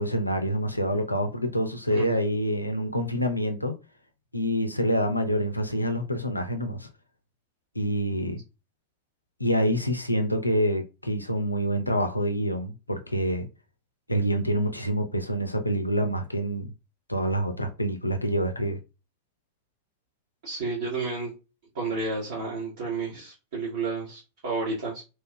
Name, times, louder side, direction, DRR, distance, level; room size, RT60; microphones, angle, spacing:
voice 1, 0.0-3.7 4.3-6.9 7.7-8.4 9.4-13.5 14.1-16.7 17.1-18.8, equal, 85° left, 0.4 m, -26 dB
voice 2, 20.4-21.3 21.7-25.0, right 3 dB, 60° right, 1.0 m, -31 dB
3.0 x 2.7 x 2.2 m
figure-of-eight pair, 90°, 0 cm